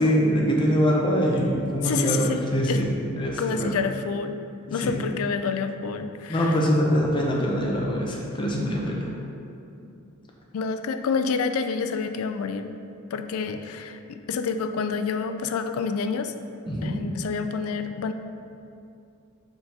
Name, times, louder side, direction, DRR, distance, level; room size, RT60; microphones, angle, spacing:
voice 1, 0.0-2.9 3.2-3.8 4.8-4.9 6.3-9.1 16.7-16.9, equal, 20° left, -2 dB, 0.8 m, -23 dB
voice 2, 1.8-2.4 2.7-2.8 3.4-4.4 4.7-6.6 10.5-12.7 13.1-16.3 16.8-18.1, left 5 dB, 75° left, 8 dB, 0.4 m, -28 dB
4.7 x 3.8 x 5.5 m, 2.6 s
head